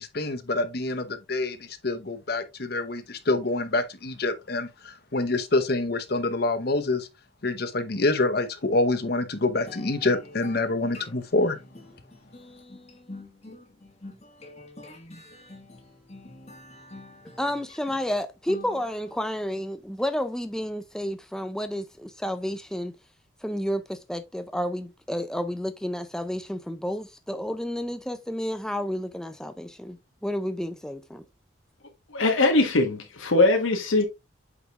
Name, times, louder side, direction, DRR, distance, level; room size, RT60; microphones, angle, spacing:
voice 1, 0.0-7.1 7.4-11.6, left 2 dB, 50° left, 0.8 m, -26 dB
sound 1, 9.7-19.3, left 2 dB, 35° left, 1.6 m, -46 dB
voice 2, 17.2-22.9 23.4-31.2, equal, 5° left, 0.3 m, -31 dB
voice 3, 32.1-34.0, left 2 dB, 80° left, 1.2 m, -21 dB
8.1 x 5.0 x 2.4 m
head